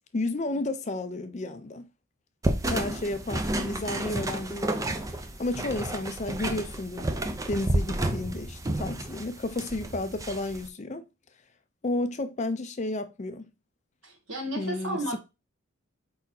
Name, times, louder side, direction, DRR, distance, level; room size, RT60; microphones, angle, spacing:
voice 1, 0.1-1.9 2.7-5.0 5.4-7.1 7.5-11.1 11.8-13.5 14.5-15.2, left 2 dB, 35° left, 0.5 m, -32 dB
sound 1, 2.4-10.7, right 1 dB, 15° right, 0.5 m, -31 dB
voice 2, 14.0-15.2, right 1 dB, 70° right, 1.7 m, -33 dB
4.7 x 4.1 x 2.7 m
head